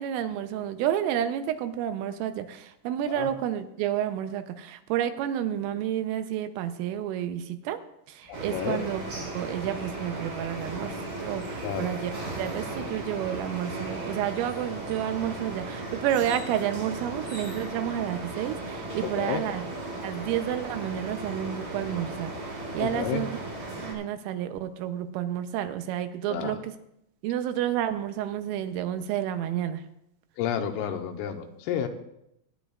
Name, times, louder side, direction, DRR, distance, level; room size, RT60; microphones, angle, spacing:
voice 1, 0.0-7.8 8.1-19.6 20.0-23.3 23.8-26.7 27.2-29.8, right 10 dB, 85° right, 9 dB, 3.3 m, -30 dB
sound 1, 8.2-14.4, right 2 dB, 50° right, 5.3 m, -51 dB
voice 2, 8.3-8.8 11.6-11.9 19.0-19.4 22.8-23.2 26.3-26.6 30.4-31.9, left 9 dB, 85° left, 5 dB, 3.5 m, -31 dB
sound 2, 8.3-23.9, right 2 dB, 30° right, 3.4 m, -36 dB
23.5 x 10.0 x 2.4 m, 0.79 s
omnidirectional pair, 5.7 m